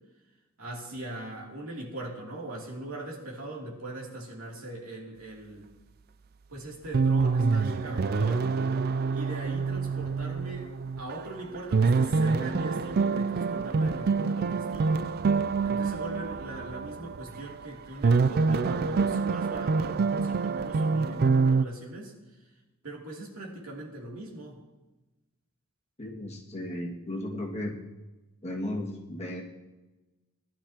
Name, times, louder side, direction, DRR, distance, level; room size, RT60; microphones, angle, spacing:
voice 1, 0.6-5.7 6.5-8.9 9.1-15.2 15.6-22.1 22.8-24.6, right 1 dB, 70° right, -3 dB, 2.8 m, -40 dB
sound 1, 6.6-6.7 6.9-11.2 11.5-17.7 18.0-21.6, right 4 dB, 45° right, 0.4 m, -26 dB
voice 2, 26.0-27.7 28.4-29.4, left 1 dB, 30° left, -2 dB, 1.9 m, -35 dB
19.5 x 11.5 x 2.9 m, 1.1 s
head